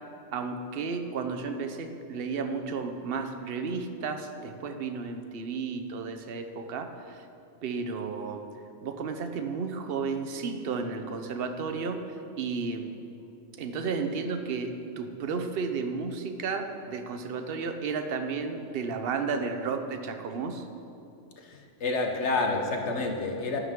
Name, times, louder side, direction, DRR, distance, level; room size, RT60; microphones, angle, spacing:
voice 1, 0.3-7.3 7.6-8.5 8.8-12.9 13.6-20.7, right 5 dB, 55° right, 7 dB, 0.9 m, -33 dB
voice 2, 21.4-23.6, left 3 dB, 65° left, 2 dB, 1.4 m, -29 dB
11.5 x 11.5 x 3.7 m, 2.6 s
omnidirectional pair, 1.3 m